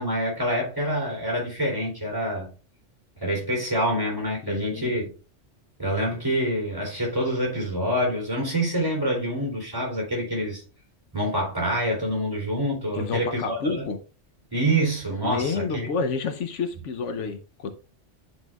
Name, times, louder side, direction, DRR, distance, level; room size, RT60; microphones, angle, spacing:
voice 1, 0.0-2.5 3.2-5.1 5.8-10.6 11.1-13.8 14.5-15.9, right 1 dB, 20° right, 2.8 m, -26 dB
voice 2, 4.4-4.9 12.9-14.0 15.2-17.7, left 5 dB, 75° left, 1.0 m, -29 dB
10.5 x 4.2 x 2.3 m
omnidirectional pair, 1.3 m